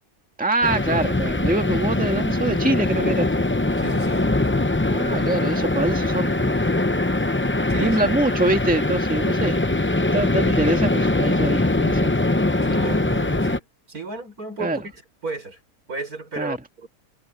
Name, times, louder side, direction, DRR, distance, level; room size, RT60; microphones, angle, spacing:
voice 1, 0.4-3.3 4.9-6.7 7.8-9.6 10.1-12.1 14.6-14.8 16.4-16.6, right 2 dB, 5° right, 1.8 m, -24 dB
sound 1, 0.6-13.6, left 2 dB, 15° left, 0.4 m, -22 dB
voice 2, 3.8-4.3 7.7-8.0 10.5-10.6 12.6-14.9 15.2-15.6 15.9-16.9, right 3 dB, 80° right, 6.3 m, -34 dB
omnidirectional pair, 1.5 m